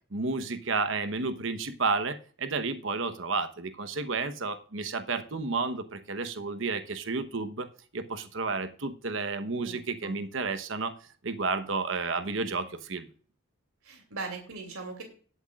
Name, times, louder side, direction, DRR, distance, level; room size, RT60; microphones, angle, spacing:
voice 1, 0.1-7.7 7.9-10.9 11.2-13.1, right 4 dB, 60° right, 10 dB, 1.0 m, -31 dB
voice 2, 9.6-10.2 13.8-15.0, right 3 dB, 80° right, 3 dB, 2.8 m, -40 dB
18.5 x 8.0 x 2.4 m, 0.42 s
head